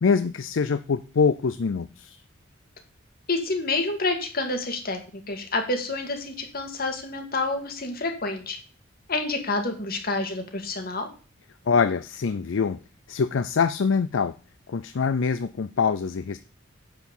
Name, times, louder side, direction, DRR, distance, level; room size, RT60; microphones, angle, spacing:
voice 1, 0.0-2.2 11.7-12.8 13.1-14.3 14.7-16.4, left 5 dB, 65° left, 13 dB, 0.5 m, -24 dB
voice 2, 3.3-8.6 9.1-11.1, left 2 dB, 50° left, 4 dB, 2.1 m, -28 dB
9.6 x 4.7 x 7.1 m, 0.37 s
head